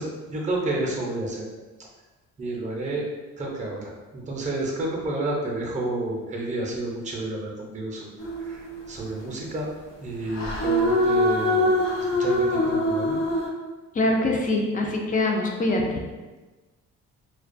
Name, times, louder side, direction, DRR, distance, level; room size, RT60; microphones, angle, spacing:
voice 1, 0.0-1.4 2.4-3.1 3.4-8.1 8.4-9.7 10.0-13.2, right 2 dB, 25° right, -1 dB, 0.6 m, -30 dB
sound 1, 8.2-8.9 10.3-13.5, left 1 dB, 85° left, 0.6 m, -23 dB
voice 2, 13.9-16.0, left 2 dB, 30° left, 1 dB, 0.4 m, -24 dB
2.3 x 2.1 x 2.5 m, 1.2 s
cardioid pair, 90°, 30 cm